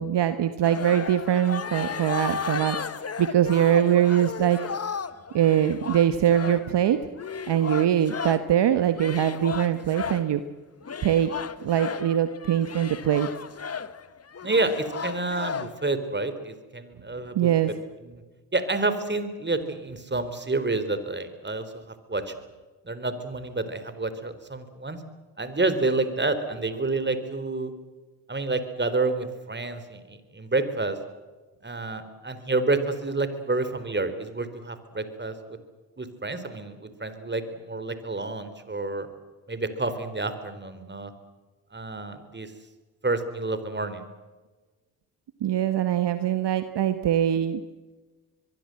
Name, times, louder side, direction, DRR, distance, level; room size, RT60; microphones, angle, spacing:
voice 1, 0.0-2.8 3.2-4.6 5.3-7.0 7.5-10.4 11.0-11.3 11.6-13.3 17.3-17.7 45.4-47.6, right 10 dB, 55° right, 10 dB, 1.5 m, -22 dB
sound 1, 0.6-8.5 9.0-10.3 10.8-15.9, left 6 dB, 30° left, 1.3 m, -34 dB
voice 2, 14.4-17.5 18.0-18.2 18.5-22.3 22.8-25.0 25.4-27.7 28.3-31.0 31.6-35.6 36.0-39.1 39.5-41.1 41.7-42.5 43.0-44.0, right 3 dB, 20° right, 11 dB, 4.0 m, -29 dB
24.0 x 22.5 x 7.8 m, 1.3 s
hypercardioid pair, 50°, 50 cm